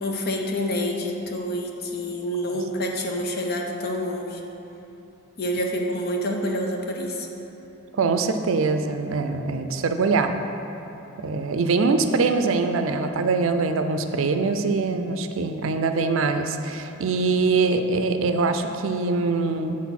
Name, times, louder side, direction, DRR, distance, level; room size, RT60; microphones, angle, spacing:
voice 1, 0.0-4.4 5.4-7.3, equal, 50° left, 1 dB, 0.8 m, -27 dB
voice 2, 7.9-10.4 11.2-19.8, right 4 dB, 70° right, 7 dB, 0.4 m, -23 dB
7.6 x 4.1 x 5.8 m, 2.9 s
head